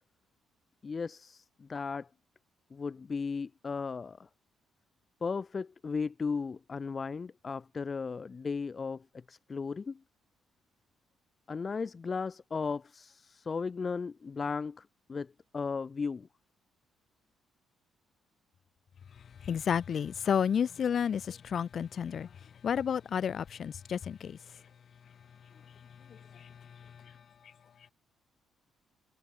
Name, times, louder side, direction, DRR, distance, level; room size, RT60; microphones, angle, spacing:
voice 1, 0.8-2.1 2.7-4.3 5.2-10.0 11.5-16.3, left 5 dB, 35° left, 5.3 m, -36 dB
voice 2, 19.5-22.3 22.6-24.4, left 7 dB, 55° left, 3.1 m, -31 dB
cardioid pair, 90°, 0 cm